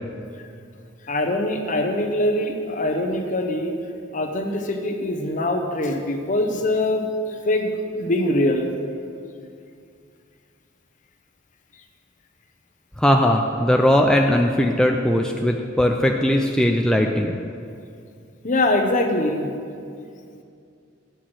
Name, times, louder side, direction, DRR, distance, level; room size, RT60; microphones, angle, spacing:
voice 1, 1.0-3.7 4.1-8.7 18.4-19.5, left 1 dB, 45° left, 4 dB, 0.9 m, -23 dB
voice 2, 13.0-17.4, left 1 dB, 5° left, 2 dB, 0.4 m, -19 dB
8.1 x 6.1 x 7.6 m, 2.4 s
head